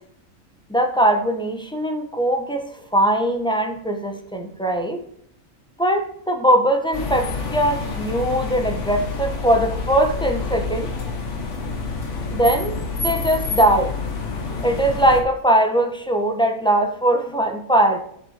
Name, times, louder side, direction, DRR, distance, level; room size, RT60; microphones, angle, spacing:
voice 1, 0.7-2.6 2.9-5.0 5.8-10.9 12.3-13.9 14.6-18.0, right 1 dB, 5° left, 3 dB, 1.0 m, -20 dB
sound 1, 6.9-15.2, left 4 dB, 55° left, 1.6 m, -28 dB
7.2 x 6.1 x 4.6 m, 0.68 s
omnidirectional pair, 1.5 m